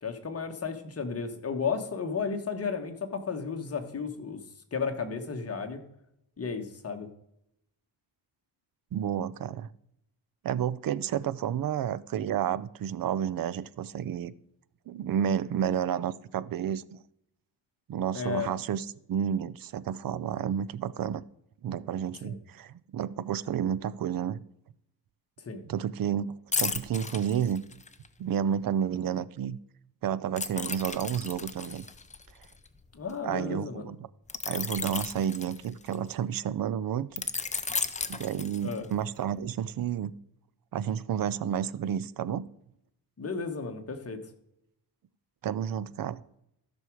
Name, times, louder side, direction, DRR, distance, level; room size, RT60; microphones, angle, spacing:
voice 1, 0.0-4.4 4.7-5.8 6.4-7.1 18.1-18.5 22.2-22.4 25.4-25.6 32.9-33.9 38.6-38.9 43.2-44.2, left 5 dB, 35° left, 1.5 m, -33 dB
voice 2, 8.9-9.7 10.4-14.3 14.9-16.8 17.9-21.2 21.6-24.4 25.7-27.6 28.2-29.6 30.0-31.8 33.2-34.1 34.5-37.1 38.1-40.1 40.7-42.5 45.4-46.2, right 9 dB, 55° right, 0.6 m, -31 dB
sound 1, 26.5-28.1 30.4-33.1 34.3-36.1 37.2-39.0 39.4-39.6, left 4 dB, 15° left, 0.6 m, -34 dB
14.0 x 6.3 x 4.7 m
wide cardioid pair, 130°, 42 cm